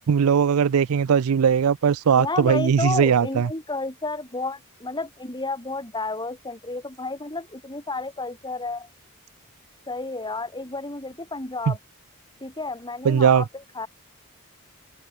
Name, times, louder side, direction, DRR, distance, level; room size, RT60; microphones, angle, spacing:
voice 1, 0.1-3.5 13.0-13.4, right 7 dB, 70° right, 0.4 m, -19 dB
voice 2, 2.2-8.9 9.9-11.8 12.4-13.9, left 3 dB, 20° left, 3.7 m, -31 dB
open air
head